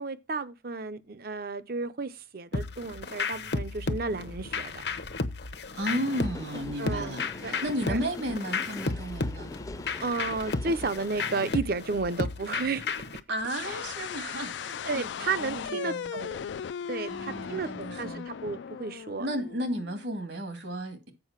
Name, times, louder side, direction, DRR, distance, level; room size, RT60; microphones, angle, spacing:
voice 1, 0.0-4.8 6.8-7.6 7.9-8.0 10.0-12.9 13.7-13.8 14.9-16.5 16.9-19.3, right 4 dB, 55° right, 0.7 m, -33 dB
sound 1, 2.5-13.2, left 3 dB, 65° left, 0.8 m, -33 dB
voice 2, 5.8-9.5 13.3-15.1 15.4-16.0 17.1-18.2 19.2-21.1, right 1 dB, 75° right, 2.2 m, -33 dB
sound 2, 6.1-11.5, left 2 dB, 20° left, 0.5 m, -43 dB
sound 3, 13.4-20.2, left 7 dB, 85° left, 0.3 m, -38 dB
7.7 x 5.4 x 5.9 m
head